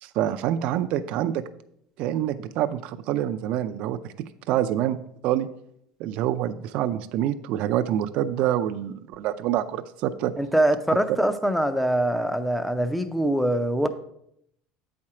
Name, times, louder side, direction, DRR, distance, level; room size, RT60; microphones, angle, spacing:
voice 1, 0.0-1.4 2.0-4.0 4.5-5.0 5.2-5.5 6.0-10.3, right 11 dB, 60° right, 9 dB, 0.4 m, -26 dB
voice 2, 10.4-13.9, right 1 dB, ahead, 10 dB, 0.5 m, -23 dB
8.4 x 4.3 x 4.8 m, 0.73 s
cardioid pair, 135°, 2 cm